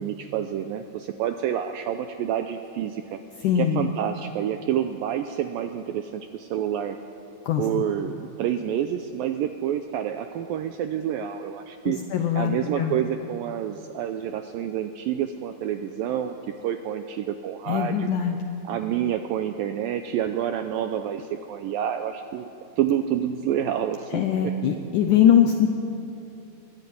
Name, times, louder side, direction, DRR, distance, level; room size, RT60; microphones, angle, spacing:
voice 1, 0.0-3.2 3.6-7.0 7.6-12.0 12.4-16.4 16.6-18.1 18.6-22.5 22.8-24.5, right 10 dB, 90° right, 8 dB, 2.0 m, -28 dB
voice 2, 3.4-3.8 7.5-7.6 11.9-13.0 17.7-18.4 24.1-25.7, left 9 dB, 80° left, 5 dB, 1.8 m, -21 dB
22.5 x 14.5 x 9.4 m, 2.8 s
omnidirectional pair, 4.8 m